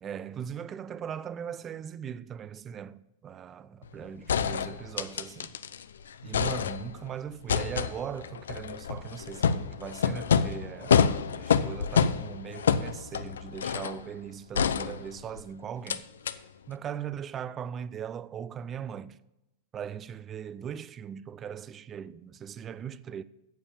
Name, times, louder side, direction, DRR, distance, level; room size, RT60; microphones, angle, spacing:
voice 1, 0.0-5.6 6.2-16.0 16.7-19.2 19.7-23.2, right 8 dB, 30° right, 0.6 m, -39 dB
sound 1, 3.8-3.9 4.3-5.8 6.1-7.1 7.5-14.0 14.5-15.4 15.9-16.0 16.3-16.4, left 7 dB, 80° left, 0.6 m, -27 dB
9.4 x 7.1 x 8.8 m
hypercardioid pair, 105°, 0 cm